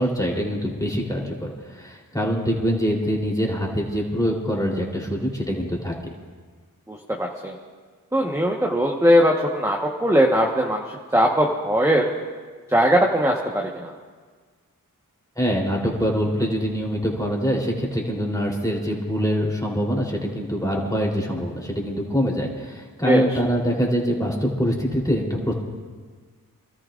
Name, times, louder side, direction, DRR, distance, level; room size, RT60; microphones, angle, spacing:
voice 1, 0.0-6.1 15.4-25.5, equal, 10° left, -2 dB, 3.5 m, -24 dB
voice 2, 6.9-7.5 8.1-12.1 12.7-13.9 23.0-23.2, equal, 10° right, 0 dB, 1.3 m, -20 dB
28.0 x 13.5 x 2.5 m, 1.5 s
cardioid pair, 45°, 35 cm